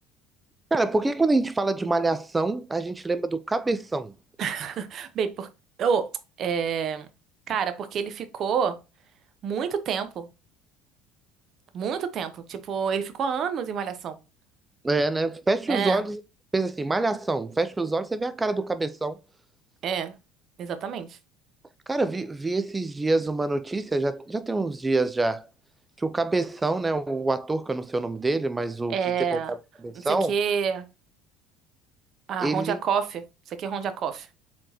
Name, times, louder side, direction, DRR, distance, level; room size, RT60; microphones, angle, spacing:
voice 1, 0.7-4.1 14.8-16.2 16.5-19.2 21.9-25.5 26.0-28.9 29.3-29.6 29.8-30.3 32.4-32.8, right 2 dB, 15° right, 0.3 m, -26 dB
voice 2, 4.4-5.5 5.8-6.1 6.4-7.1 7.5-8.8 9.4-10.3 11.7-14.2 15.7-16.0 19.8-20.1 20.6-21.2 28.9-29.5 30.3-30.9 32.3-34.3, right 7 dB, 50° right, 0.8 m, -28 dB
4.7 x 3.6 x 2.9 m
supercardioid pair, 90°, 0 cm